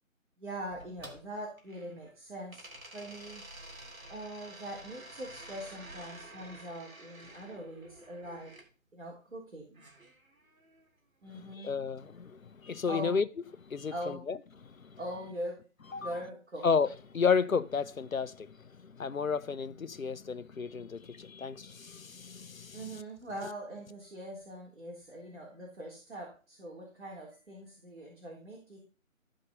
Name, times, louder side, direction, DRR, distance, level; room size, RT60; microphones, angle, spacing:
voice 1, 0.4-2.6 2.9-3.4 4.1-8.5 8.9-9.9 11.2-11.8 12.9-13.2 13.9-14.3 15.0-15.6 16.0-16.7 22.7-28.8, right 1 dB, 55° right, 3.8 m, -42 dB
sound 1, 0.7-2.1 2.5-8.7 9.7-10.9, right 1 dB, 80° right, 3.2 m, -50 dB
voice 2, 11.3-13.3 13.6-14.4 14.6-15.0 15.9-16.1 16.6-22.8, left 5 dB, 80° left, 0.9 m, -32 dB
13.0 x 5.3 x 5.3 m
figure-of-eight pair, 160°, 41 cm